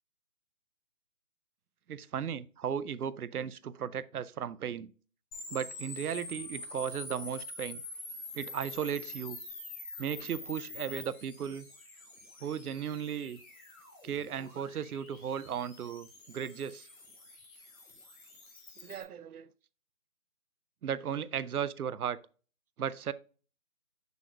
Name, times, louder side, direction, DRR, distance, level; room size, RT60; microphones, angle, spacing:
voice 1, 1.9-4.9 5.5-7.8 8.3-9.4 10.0-11.7 12.4-13.4 14.0-16.9 18.8-19.5 20.8-22.2 22.8-23.1, right 8 dB, 75° right, 0.6 m, -36 dB
sound 1, 5.3-19.0, left 2 dB, 65° left, 2.7 m, -46 dB
6.8 x 6.2 x 2.3 m
hypercardioid pair, 170°, 45 cm